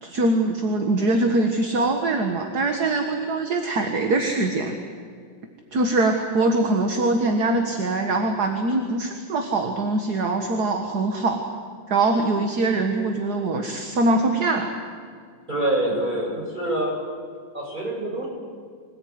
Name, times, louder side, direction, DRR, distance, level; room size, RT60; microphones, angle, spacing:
voice 1, 0.0-4.8 5.7-11.4 11.9-14.7, right 2 dB, 55° right, 4 dB, 2.2 m, -23 dB
voice 2, 15.5-17.0 17.5-18.3, right 1 dB, 25° right, -1 dB, 7.1 m, -25 dB
26.0 x 18.5 x 9.7 m, 2.1 s
omnidirectional pair, 2.1 m